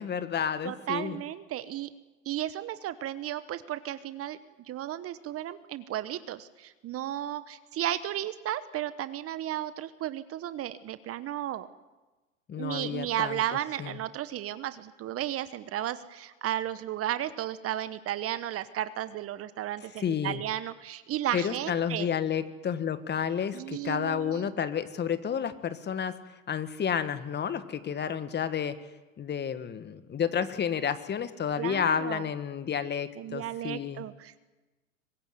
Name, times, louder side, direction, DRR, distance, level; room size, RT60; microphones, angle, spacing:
voice 1, 0.0-1.2 12.5-14.0 19.9-20.4 21.3-26.2 26.5-28.8 29.2-34.0, left 8 dB, 25° left, 12 dB, 1.5 m, -31 dB
voice 2, 0.6-1.9 2.2-4.4 4.7-11.7 12.5-22.1 23.5-24.5 31.6-32.2 33.2-34.4, right 12 dB, 35° right, 14 dB, 1.1 m, -34 dB
24.0 x 20.5 x 8.1 m, 1.2 s
hypercardioid pair, 95°, 41 cm